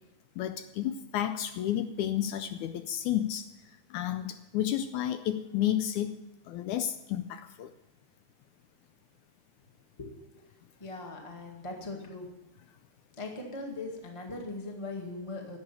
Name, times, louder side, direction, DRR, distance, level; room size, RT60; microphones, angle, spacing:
voice 1, 0.4-3.5 3.9-6.2 6.5-7.7, left 11 dB, 80° left, 10 dB, 1.9 m, -31 dB
voice 2, 10.8-12.3 13.2-15.6, left 2 dB, 15° left, 1 dB, 1.1 m, -40 dB
12.0 x 7.8 x 9.3 m, 1.0 s
omnidirectional pair, 3.7 m